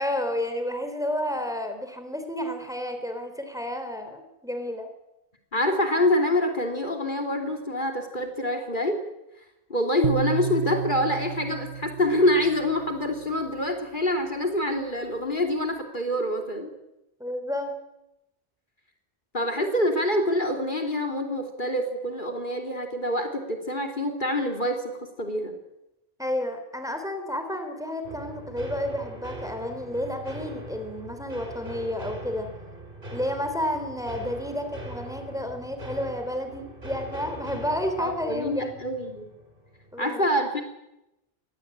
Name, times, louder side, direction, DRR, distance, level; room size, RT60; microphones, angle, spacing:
voice 1, 0.0-4.9 17.2-17.7 26.2-32.5 33.1-38.8 39.9-40.2, left 1 dB, 5° right, 6 dB, 3.7 m, -31 dB
voice 2, 5.5-9.0 9.7-16.7 19.3-25.6 38.0-39.3 40.0-40.6, left 1 dB, 50° left, 4 dB, 3.1 m, -26 dB
sound 1, 10.0-13.3, right 7 dB, 90° right, 1.4 m, -32 dB
sound 2, 28.0-40.0, right 1 dB, 55° right, 3.5 m, -41 dB
25.0 x 19.5 x 8.8 m, 0.92 s
omnidirectional pair, 1.0 m